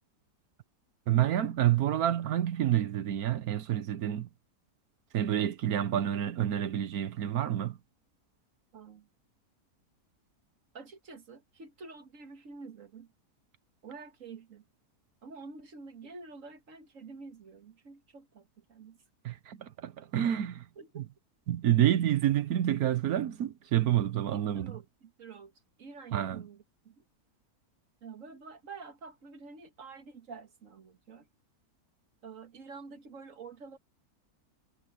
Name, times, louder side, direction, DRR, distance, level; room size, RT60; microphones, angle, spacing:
voice 1, 1.1-4.3 5.1-7.8 19.2-20.6 21.0-21.1 21.5-24.8 26.1-26.4, right 11 dB, 75° right, 1.3 m, -28 dB
voice 2, 8.7-9.1 10.7-13.1 13.8-14.6 15.2-19.0 20.8-21.1 24.3-25.5 25.8-27.0 28.0-31.3 32.2-33.8, right 4 dB, 60° right, 1.9 m, -48 dB
omnidirectional pair, 1.6 m